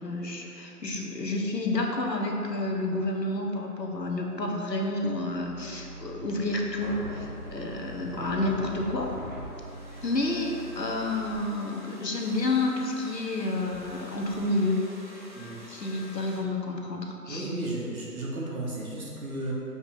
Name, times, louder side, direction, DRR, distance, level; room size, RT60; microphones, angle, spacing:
voice 1, 0.0-9.1 10.0-14.8 15.7-17.5, left 2 dB, 80° left, 1 dB, 1.1 m, -30 dB
sound 1, 5.4-11.4, right 2 dB, 35° left, 0.9 m, -44 dB
sound 2, 6.8-16.4, equal, 30° right, 0.7 m, -44 dB
voice 2, 17.3-19.5, right 1 dB, 55° right, -4 dB, 1.5 m, -34 dB
7.2 x 5.0 x 2.8 m, 2.6 s
figure-of-eight pair, 145°, 49 cm